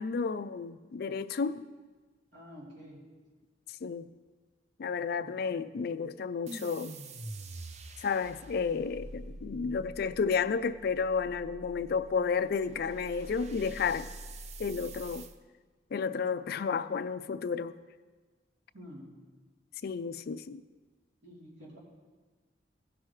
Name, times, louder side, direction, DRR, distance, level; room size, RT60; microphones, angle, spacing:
voice 1, 0.0-1.7 3.8-4.1 4.8-6.9 8.0-14.1 14.6-15.3 15.9-17.8 19.8-20.6, left 5 dB, 55° left, 0.4 m, -32 dB
voice 2, 2.3-3.0 5.1-5.5 9.0-9.4 18.7-19.1 21.2-21.8, equal, 85° right, 3.1 m, -50 dB
sound 1, 6.5-15.3, right 2 dB, 40° right, 0.5 m, -46 dB
16.5 x 6.0 x 3.2 m
head